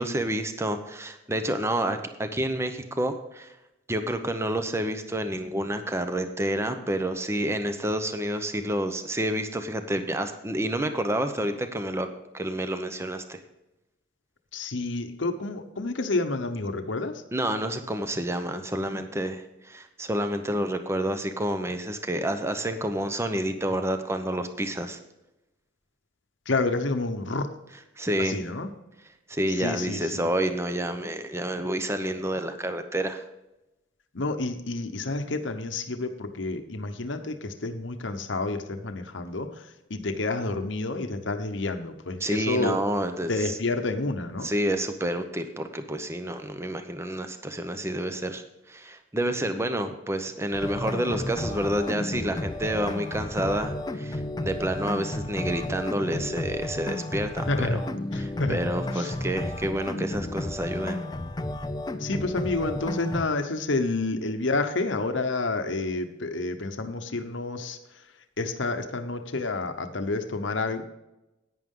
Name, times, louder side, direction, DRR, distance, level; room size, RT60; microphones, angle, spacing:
voice 1, 0.0-3.5 3.9-12.1 12.3-13.4 17.3-25.0 28.0-28.4 29.3-33.2 42.2-43.6 44.4-57.7 58.2-61.0, right 1 dB, 15° right, 8 dB, 0.8 m, -29 dB
voice 2, 14.5-17.2 26.5-27.5 28.2-28.7 29.5-30.3 34.1-42.8 43.3-44.5 57.5-57.8 58.1-58.6 58.9-59.1 62.0-68.1 68.4-70.8, left 3 dB, 65° left, 7 dB, 1.0 m, -29 dB
sound 1, 50.5-63.3, left 1 dB, 20° left, 0.5 m, -32 dB
11.0 x 9.4 x 3.8 m, 0.93 s
head